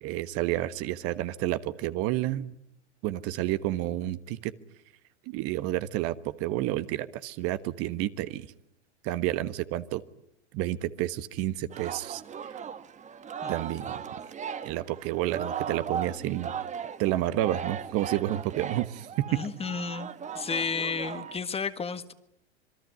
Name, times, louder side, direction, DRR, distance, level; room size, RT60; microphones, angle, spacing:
voice 1, 0.0-2.6 3.0-4.5 5.3-8.5 9.0-10.0 10.5-12.5 13.5-14.0 14.6-16.5 17.0-19.4, right 14 dB, 45° right, 13 dB, 1.4 m, -30 dB
Singing, 11.7-21.4, right 7 dB, 20° right, 1.3 m, -37 dB
voice 2, 19.3-20.1 20.3-22.1, left 5 dB, 15° left, 11 dB, 1.7 m, -32 dB
27.0 x 22.5 x 9.5 m, 0.75 s
hypercardioid pair, 105°, 34 cm